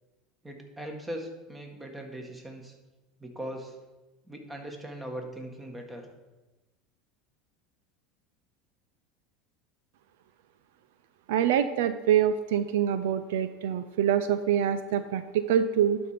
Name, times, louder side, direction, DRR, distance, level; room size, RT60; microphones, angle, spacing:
voice 1, 0.4-2.7 3.2-3.7 4.3-6.1, right 1 dB, 15° right, 3 dB, 1.8 m, -39 dB
voice 2, 11.3-16.0, right 9 dB, 80° right, 11 dB, 0.4 m, -25 dB
11.5 x 4.3 x 5.0 m, 1.1 s
hypercardioid pair, 95°, 0 cm